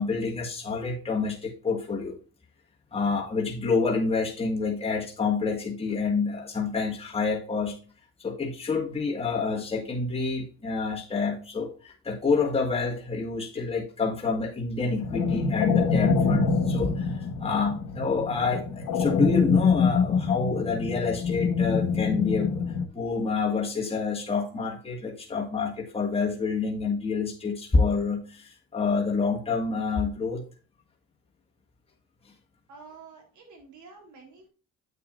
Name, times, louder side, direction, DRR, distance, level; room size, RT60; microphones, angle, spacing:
voice 1, 0.0-2.2 2.9-7.8 8.2-22.6 22.9-30.4, left 4 dB, 20° left, -1 dB, 1.6 m, -28 dB
sound 1, 15.0-22.9, left 5 dB, 75° left, 1.3 m, -25 dB
voice 2, 32.7-34.5, right 4 dB, 75° right, 1 dB, 3.4 m, -49 dB
8.3 x 6.7 x 2.5 m, 0.37 s
cardioid pair, 90°, 30 cm